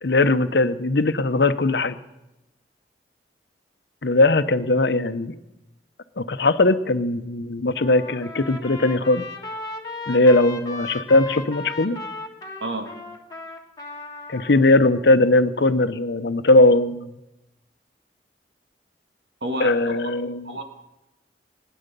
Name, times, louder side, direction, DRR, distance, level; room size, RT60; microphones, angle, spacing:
voice 1, 0.0-2.0 4.0-5.3 6.2-9.2 10.1-12.0 14.3-17.1 19.6-20.5, left 2 dB, 70° left, 11 dB, 0.8 m, -19 dB
Trumpet, 7.8-14.6, left 3 dB, 20° left, 1.3 m, -36 dB
voice 2, 19.4-20.0 20.4-20.6, right 1 dB, 85° right, 4 dB, 2.1 m, -30 dB
19.0 x 10.0 x 6.8 m, 0.97 s
head